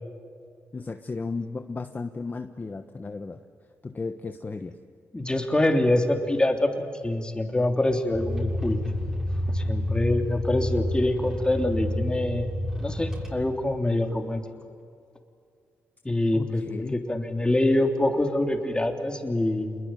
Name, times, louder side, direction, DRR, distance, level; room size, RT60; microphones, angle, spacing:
voice 1, 0.7-3.4 3.8-4.8 16.3-17.0, left 4 dB, 30° left, 7 dB, 1.2 m, -34 dB
voice 2, 5.1-8.8 9.5-12.5 12.8-14.4 16.0-19.8, left 1 dB, 15° left, 4 dB, 3.3 m, -25 dB
sound 1, 8.1-13.7, equal, 10° right, 7.0 m, -29 dB
28.0 x 21.5 x 9.2 m, 2.2 s
cardioid pair, 80°, 6 cm